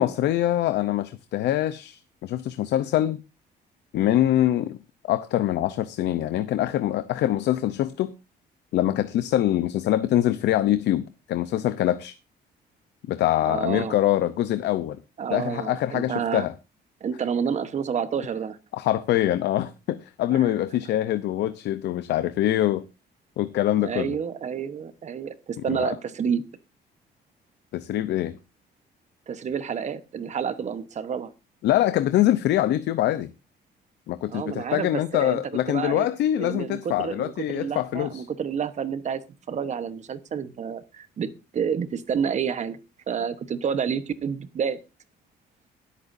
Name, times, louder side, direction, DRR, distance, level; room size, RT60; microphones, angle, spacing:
voice 1, 0.0-3.2 3.9-4.8 5.0-8.1 8.7-12.1 13.1-15.0 15.3-16.5 18.7-22.8 23.4-24.2 25.7-25.9 27.7-28.4 31.6-33.3 34.1-38.2, left 13 dB, 80° left, 0.7 m, -24 dB
voice 2, 13.4-14.0 15.2-16.5 17.0-18.6 20.3-20.5 23.8-26.4 29.3-31.3 34.3-35.4 35.7-36.1 36.4-42.8 43.1-44.8, right 7 dB, 40° right, 1.1 m, -29 dB
22.0 x 8.6 x 2.7 m
cardioid pair, 145°, 18 cm